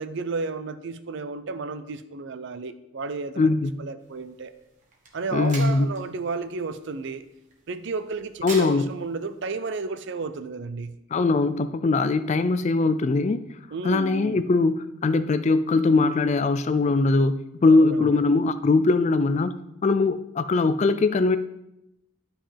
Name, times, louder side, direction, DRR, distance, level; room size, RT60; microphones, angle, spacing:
voice 1, 0.0-3.5 3.8-4.5 5.1-7.3 7.7-11.0 13.7-14.4 17.7-18.2, right 4 dB, 55° right, 12 dB, 0.5 m, -32 dB
voice 2, 3.4-3.9 5.3-5.9 8.4-8.9 11.1-13.4 13.8-17.3 17.6-19.5 19.8-21.4, left 3 dB, 35° left, 11 dB, 0.3 m, -21 dB
sound 1, 4.0-9.4, right 3 dB, 35° right, 1.4 m, -44 dB
11.5 x 5.5 x 3.4 m, 0.86 s
head